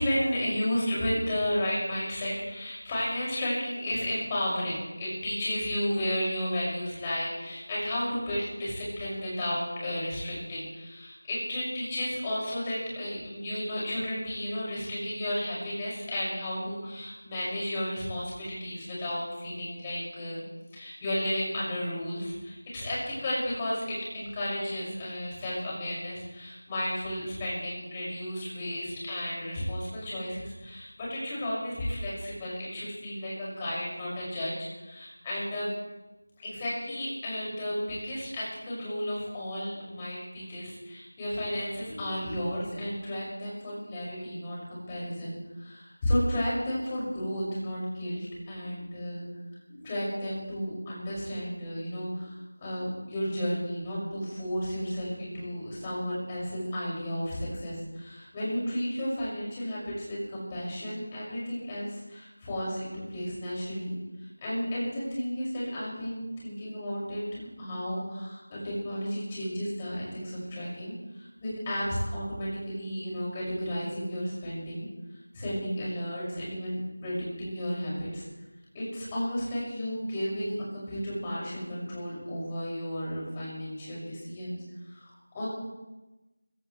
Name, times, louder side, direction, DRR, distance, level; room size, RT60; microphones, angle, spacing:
voice 1, 0.0-20.4 20.7-23.8 24.1-34.5 34.8-35.7 36.4-49.2 49.8-52.3 52.6-63.9 64.4-70.9 71.4-74.9 75.3-78.2 78.7-84.6 85.0-85.5, equal, 15° left, -7 dB, 6.1 m, -33 dB
26.0 x 16.5 x 3.3 m, 1.1 s
figure-of-eight pair, 175°, 0 cm